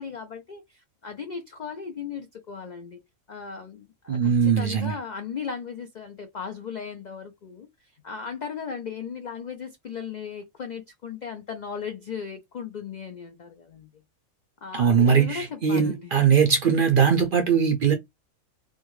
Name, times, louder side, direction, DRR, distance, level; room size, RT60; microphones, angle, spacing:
voice 1, 0.0-3.0 3.3-14.0 14.6-16.2, left 6 dB, 85° left, 0.4 m, -37 dB
voice 2, 4.1-5.0 14.7-17.9, right 6 dB, 60° right, 0.5 m, -20 dB
3.5 x 2.2 x 3.0 m
omnidirectional pair, 1.4 m